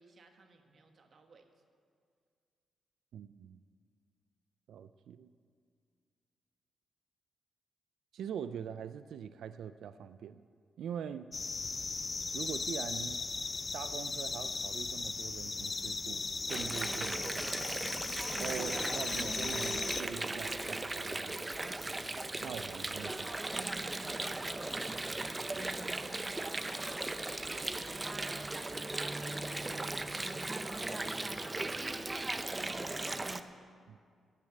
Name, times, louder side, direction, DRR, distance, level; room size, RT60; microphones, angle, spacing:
voice 1, 0.0-1.5 25.6-29.4 29.6-32.3, right 4 dB, 45° right, 5 dB, 1.3 m, -57 dB
voice 2, 3.1-3.6 4.7-5.3 8.1-10.4 10.8-11.3 12.3-13.2 13.7-17.2 18.4-21.8 22.4-24.1 33.9-34.0, right 8 dB, 80° right, 12 dB, 0.3 m, -43 dB
sound 1, 11.3-20.0, left 4 dB, 30° left, 0.5 m, -37 dB
Water, 16.5-33.4, right 2 dB, 15° right, 0.5 m, -37 dB
sound 2, 19.2-30.9, right 2 dB, 65° right, 2.8 m, -62 dB
15.0 x 6.6 x 8.9 m, 2.2 s
cardioid pair, 120°, 0 cm